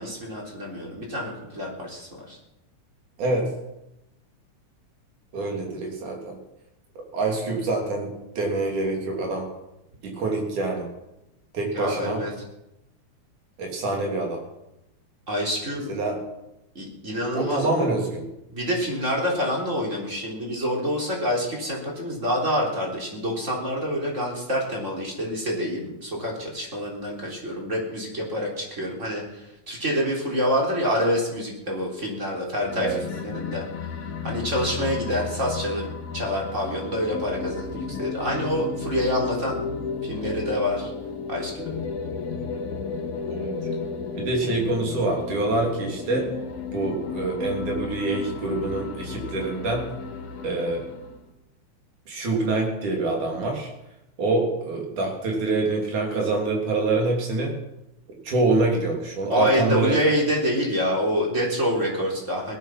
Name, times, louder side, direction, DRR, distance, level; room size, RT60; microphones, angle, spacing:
voice 1, 0.0-2.4 11.7-12.3 15.3-15.9 16.8-17.7 18.5-33.6 34.2-39.6 40.0-40.9 41.3-41.7 59.3-62.6, equal, 25° right, -1 dB, 3.7 m, -27 dB
voice 2, 3.2-3.5 5.3-6.4 7.1-9.5 10.0-10.9 11.5-12.2 13.6-14.4 15.9-16.2 17.3-18.3 32.8-33.0 43.3-43.5 44.2-46.3 46.7-49.9 50.4-50.9 52.1-53.7 54.2-57.6 58.2-60.0, right 2 dB, 80° right, 0 dB, 4.6 m, -26 dB
sound 1, 32.6-51.2, left 5 dB, 80° left, 3.0 m, -33 dB
18.0 x 12.0 x 6.1 m, 0.91 s
omnidirectional pair, 3.5 m